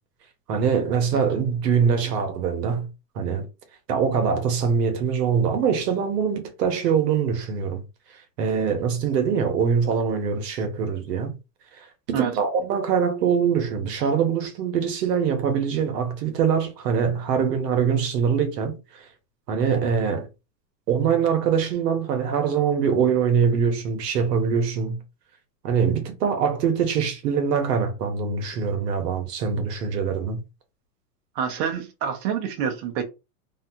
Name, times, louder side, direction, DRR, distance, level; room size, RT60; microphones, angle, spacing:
voice 1, 0.5-2.9 3.1-3.5 3.9-7.8 8.4-11.4 11.8-19.1 19.5-20.3 20.9-25.0 25.6-30.4, right 6 dB, 75° right, 1.0 m, -23 dB
voice 2, 31.4-33.0, right 7 dB, 40° right, 0.7 m, -27 dB
2.7 x 2.2 x 2.7 m
hypercardioid pair, 135°, 49 cm